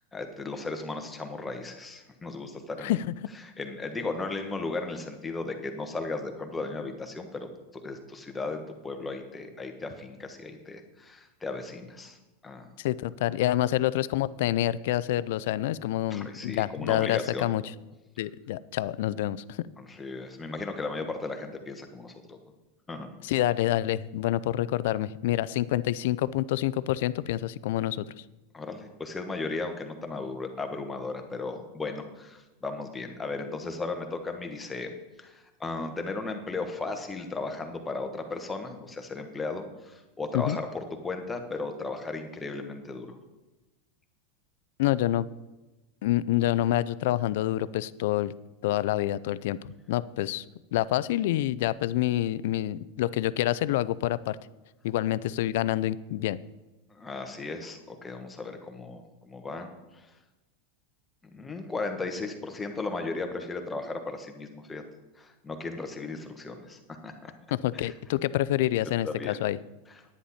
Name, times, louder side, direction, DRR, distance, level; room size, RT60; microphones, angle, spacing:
voice 1, 0.1-3.0 3.3-12.2 12.4-12.7 16.1-17.5 19.8-22.4 22.9-23.1 28.5-34.9 35.2-43.2 56.9-60.1 61.3-64.8 65.2-67.3 67.7-67.9 69.0-69.4, left 3 dB, 10° left, 5 dB, 1.2 m, -36 dB
voice 2, 12.8-17.6 18.2-19.7 23.2-28.0 40.3-40.6 44.8-45.3 46.0-48.3 48.6-50.4 50.7-54.4 54.8-56.4 67.5-69.6, left 14 dB, 70° left, 18 dB, 0.4 m, -27 dB
10.0 x 9.8 x 4.2 m, 1.1 s
supercardioid pair, 140°, 0 cm